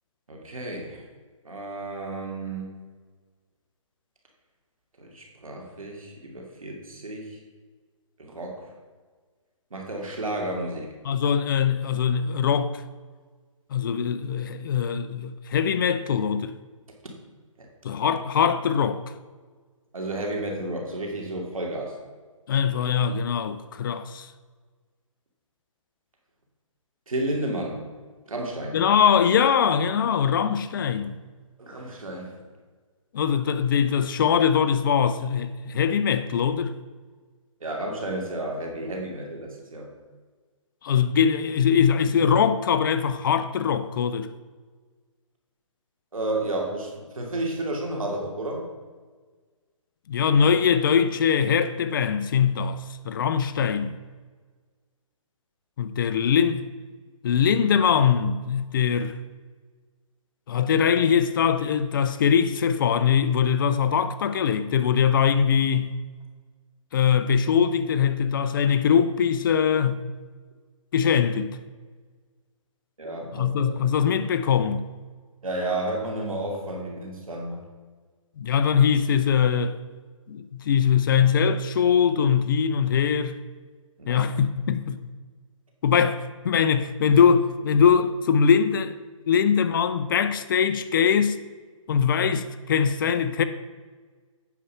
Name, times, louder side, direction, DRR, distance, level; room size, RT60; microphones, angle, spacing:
voice 1, 0.3-1.1 1.4-2.7 5.0-7.4 8.2-8.7 9.7-11.0 17.6-17.7 19.9-22.0 27.1-27.8 28.3-28.8 31.6-32.3 37.6-39.9 46.1-48.6 73.0-73.5 75.4-77.6 84.0-84.3, right 1 dB, 85° right, 2.6 m, -32 dB
voice 2, 11.0-12.7 13.7-16.5 17.8-19.0 22.5-24.3 28.7-31.1 33.1-36.7 40.8-44.3 50.1-53.9 55.8-56.7 57.2-59.2 60.5-66.0 66.9-70.1 70.9-71.6 73.3-74.8 78.4-79.8 80.3-83.4 84.1-85.1 85.8-89.0 89.3-91.4 91.9-93.4, left 7 dB, 40° left, 0.5 m, -22 dB
8.4 x 5.5 x 5.7 m
hypercardioid pair, 150°, 17 cm